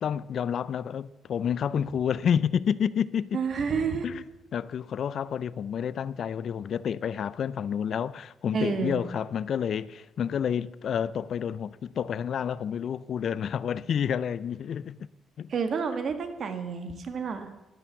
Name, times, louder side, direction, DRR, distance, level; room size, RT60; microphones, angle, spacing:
voice 1, 0.0-3.4 4.0-4.2 4.5-15.0 15.4-15.5, left 8 dB, 60° left, 0.4 m, -29 dB
voice 2, 3.3-4.1 8.5-9.0 15.5-17.5, right 5 dB, 55° right, 1.6 m, -29 dB
11.5 x 10.5 x 7.0 m
cardioid pair, 90°, 0 cm